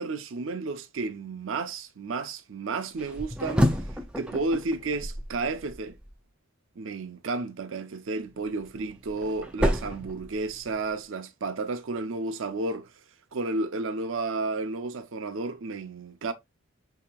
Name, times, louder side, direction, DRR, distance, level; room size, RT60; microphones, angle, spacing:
voice 1, 0.0-3.7 4.2-6.0 6.8-12.9 13.3-16.3, right 3 dB, 70° right, 0.5 m, -32 dB
sound 1, 3.0-6.1 8.3-10.9, equal, 5° right, 0.3 m, -30 dB
5.8 x 2.8 x 2.2 m
head